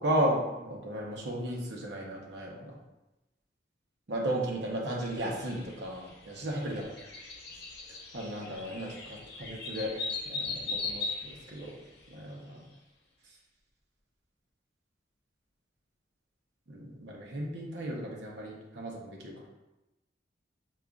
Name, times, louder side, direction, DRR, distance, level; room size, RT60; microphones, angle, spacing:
voice 1, 0.0-2.7 4.1-6.9 8.1-11.7 12.1-12.6 16.7-19.5, right 1 dB, 65° right, -2 dB, 0.7 m, -34 dB
sound 1, 5.0-12.3, left 3 dB, 60° left, 0.7 m, -40 dB
5.0 x 2.4 x 2.3 m, 0.99 s
head